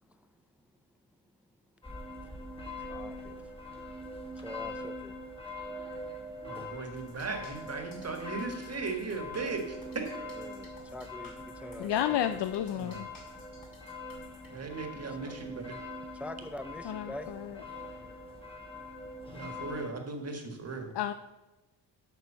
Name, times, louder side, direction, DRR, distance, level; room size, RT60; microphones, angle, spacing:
sound 1, 1.8-19.9, left 1 dB, 15° left, 1.5 m, -43 dB
voice 1, 2.9-3.5 4.4-5.2 10.4-11.9 12.3-12.4 15.2-15.4 16.1-17.3, left 1 dB, 5° right, 10 dB, 0.3 m, -44 dB
voice 2, 6.4-10.1 12.7-13.0 14.5-15.8 19.3-20.9, right 4 dB, 35° right, 4 dB, 1.6 m, -37 dB
sound 2, 7.0-14.5, left 2 dB, 50° left, 3.5 m, -56 dB
voice 3, 11.8-13.1 16.8-17.6 20.9-21.1, left 11 dB, 70° left, 10 dB, 0.5 m, -31 dB
7.2 x 6.1 x 6.7 m, 1.1 s
wide cardioid pair, 115°, 43 cm